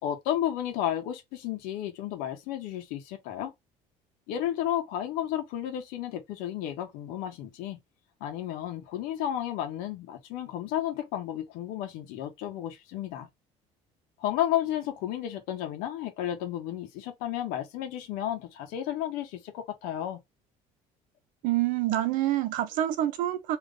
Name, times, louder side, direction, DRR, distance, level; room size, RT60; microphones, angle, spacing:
voice 1, 0.0-3.5 4.3-7.8 8.2-13.3 14.2-20.2, left 11 dB, 85° left, 1.5 m, -32 dB
voice 2, 21.4-23.6, right 13 dB, 70° right, 0.9 m, -27 dB
3.6 x 3.2 x 3.8 m
cardioid pair, 160°, 14 cm